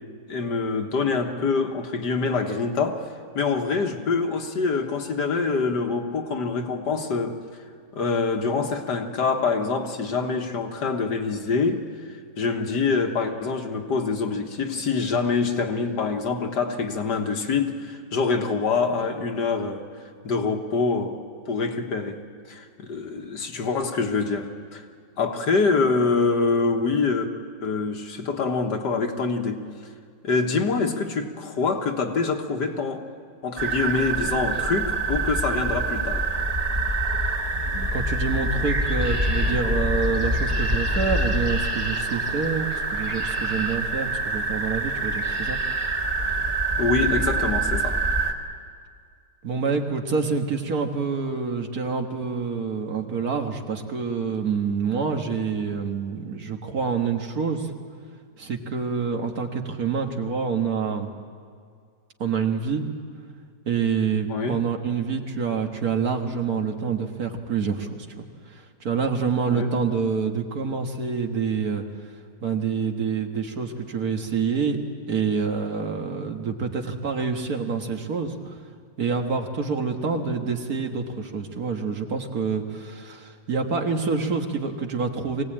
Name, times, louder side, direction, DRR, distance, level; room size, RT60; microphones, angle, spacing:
voice 1, 0.3-3.1 3.3-7.4 7.9-19.9 20.2-22.2 22.5-24.8 25.2-27.3 27.6-29.6 30.2-33.0 33.4-36.3 46.8-48.0 64.3-64.6 69.5-69.7, left 4 dB, 80° left, 3 dB, 2.0 m, -25 dB
sound 1, 33.6-48.3, right 2 dB, 25° right, 1.6 m, -25 dB
voice 2, 37.9-45.6 49.4-57.7 58.4-61.1 62.2-62.8 63.7-67.9 68.2-68.3 68.5-71.8 72.4-74.8 75.1-78.5 79.0-85.4, right 5 dB, 60° right, 4 dB, 1.9 m, -27 dB
23.5 x 17.5 x 8.8 m, 2.1 s
omnidirectional pair, 1.8 m